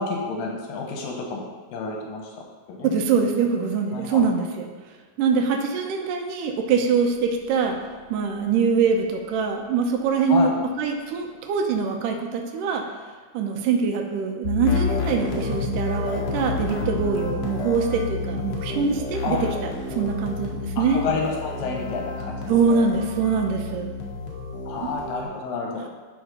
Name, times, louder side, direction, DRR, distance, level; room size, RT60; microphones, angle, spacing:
voice 1, 0.0-2.3 2.7-2.9 3.9-4.3 10.3-10.5 19.2-19.4 20.8-22.5 24.7-25.8, left 4 dB, 85° left, 0 dB, 2.9 m, -30 dB
voice 2, 2.8-4.7 5.2-7.8 8.1-10.5 10.8-12.9 13.3-21.0 22.5-23.9, right 5 dB, 80° right, 3 dB, 2.3 m, -23 dB
sound 1, 14.4-25.2, left 3 dB, 65° left, 2.6 m, -30 dB
11.0 x 4.0 x 5.4 m, 1.4 s
omnidirectional pair, 3.8 m